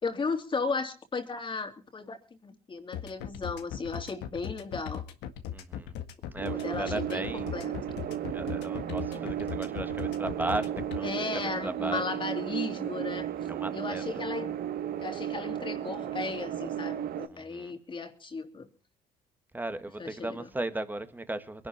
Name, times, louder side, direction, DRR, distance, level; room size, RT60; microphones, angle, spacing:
voice 1, 0.0-2.2 2.4-5.0 6.5-7.7 9.1-9.2 11.0-13.3 13.7-14.5 15.0-18.7 20.0-20.5, left 4 dB, 30° left, 3.1 m, -35 dB
sound 1, 2.9-11.0, left 10 dB, 90° left, 1.9 m, -38 dB
voice 2, 5.5-6.0 6.3-7.9 8.3-12.0 13.5-14.2 17.3-17.7 19.5-21.7, right 2 dB, 10° right, 1.7 m, -36 dB
sound 2, 6.4-17.3, right 10 dB, 65° right, 1.4 m, -34 dB
22.5 x 11.5 x 4.5 m
cardioid pair, 110°, 17 cm